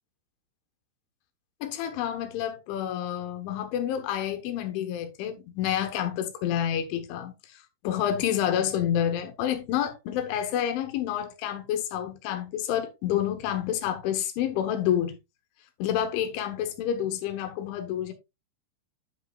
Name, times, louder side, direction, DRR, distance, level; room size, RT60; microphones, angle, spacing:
voice 1, 1.6-7.3 7.8-15.2 15.8-18.1, left 10 dB, 85° left, 3.6 m, -28 dB
9.4 x 7.5 x 2.3 m
omnidirectional pair, 5.3 m